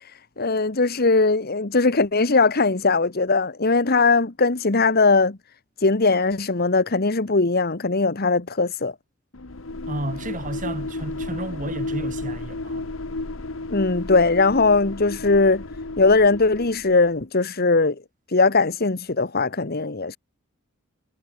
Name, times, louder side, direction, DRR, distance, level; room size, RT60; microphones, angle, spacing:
voice 1, 0.4-5.4 5.8-8.9 13.7-15.6 16.0-17.9 18.3-20.2, left 3 dB, 50° left, 1.4 m, -20 dB
sound 1, 9.3-17.1, left 2 dB, 70° left, 1.4 m, -33 dB
voice 2, 9.9-12.9, right 1 dB, 40° right, 3.4 m, -32 dB
head